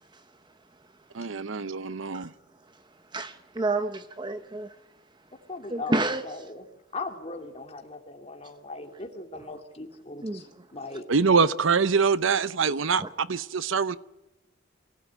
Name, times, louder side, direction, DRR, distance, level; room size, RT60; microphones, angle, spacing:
voice 1, 1.1-2.3 11.1-14.0, right 5 dB, 70° right, 0.7 m, -24 dB
voice 2, 3.1-4.7 5.7-6.2 10.2-10.4 13.0-13.1, right 2 dB, 20° right, 0.8 m, -29 dB
voice 3, 5.5-6.7 6.9-11.0, left 3 dB, 30° left, 2.7 m, -39 dB
23.5 x 16.5 x 9.0 m
head